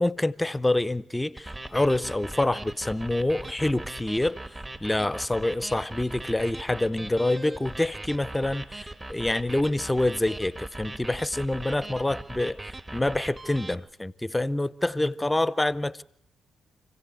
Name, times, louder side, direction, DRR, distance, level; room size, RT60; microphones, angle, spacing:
voice 1, 0.0-4.4 4.8-12.6 12.9-16.0, left 1 dB, 15° left, 0.8 m, -26 dB
sound 1, 1.4-13.7, right 2 dB, 25° right, 1.8 m, -40 dB
28.5 x 16.0 x 8.0 m
hypercardioid pair, 40°, 0 cm